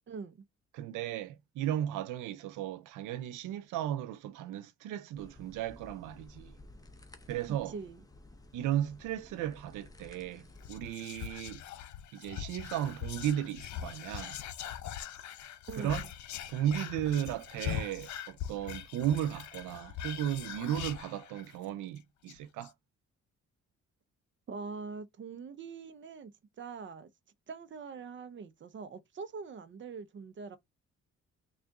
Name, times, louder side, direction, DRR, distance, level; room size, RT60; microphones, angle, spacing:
voice 1, 0.1-0.4 7.7-8.0 15.7-16.1 24.5-26.3 26.6-27.1 27.5-30.6, right 5 dB, 40° right, 0.7 m, -43 dB
voice 2, 0.7-6.6 7.3-7.7 8.5-11.6 12.1-14.4 15.8-16.1 16.5-22.7, right 11 dB, 85° right, 0.5 m, -35 dB
sound 1, 5.2-10.8, left 2 dB, 10° left, 0.7 m, -54 dB
Whispering, 10.6-21.7 22.0-22.1 22.3-22.7, left 10 dB, 70° left, 0.6 m, -42 dB
3.7 x 2.5 x 3.5 m
cardioid pair, 90°, 30 cm